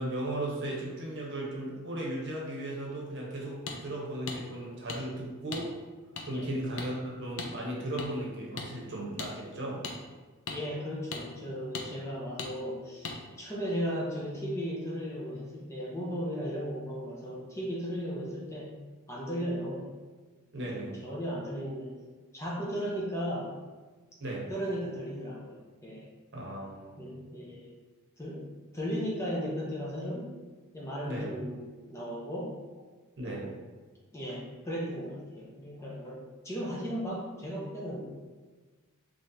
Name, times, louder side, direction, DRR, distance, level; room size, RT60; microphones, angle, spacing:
voice 1, 0.0-5.7 6.2-9.8 20.5-21.0 24.2-24.5 26.3-27.0 31.0-31.3 33.2-33.5, right 1 dB, 50° right, -3 dB, 0.9 m, -36 dB
sound 1, 3.7-3.8 4.3-4.4 4.9-5.0 5.5-5.6 6.2-6.3 6.8-6.9 7.4-7.5 8.0-8.1 8.6-8.7 9.2-9.3 9.8-10.0 10.5-10.6 11.1-11.2 11.7-11.9 12.4-12.5 13.0-13.2, left 4 dB, 60° left, 0.5 m, -37 dB
voice 2, 10.5-13.1 13.4-18.8 19.1-19.9 20.6-21.9 22.3-23.5 24.5-26.1 27.0-27.7 28.2-28.5 28.7-30.3 30.7-31.6 31.9-32.6 33.2-33.4 34.1-38.1, equal, 10° left, -5 dB, 0.6 m, -36 dB
4.0 x 3.1 x 2.6 m, 1.4 s
head